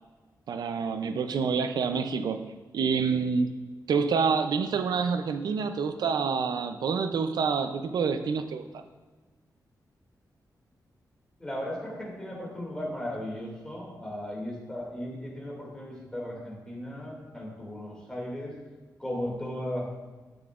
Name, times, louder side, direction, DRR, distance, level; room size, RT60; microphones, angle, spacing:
voice 1, 0.5-3.5 3.9-8.8, right 5 dB, 85° right, 8 dB, 0.5 m, -27 dB
voice 2, 11.4-18.6 19.0-19.9, left 1 dB, 10° left, -3 dB, 2.4 m, -36 dB
13.0 x 7.8 x 2.5 m, 1.3 s
wide cardioid pair, 175°, 7 cm